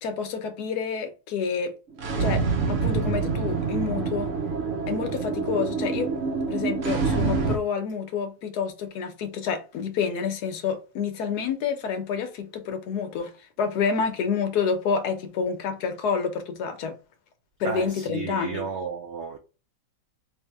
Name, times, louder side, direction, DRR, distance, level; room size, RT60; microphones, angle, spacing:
voice 1, 0.0-1.7 2.2-4.3 4.9-6.1 6.5-13.3 13.6-16.9 17.6-18.6, left 6 dB, 70° left, 1.2 m, -28 dB
sound 1, 1.9-7.6, right 5 dB, 60° right, 0.8 m, -26 dB
voice 2, 17.6-19.4, right 5 dB, 85° right, 0.6 m, -33 dB
3.2 x 2.7 x 3.4 m
omnidirectional pair, 1.8 m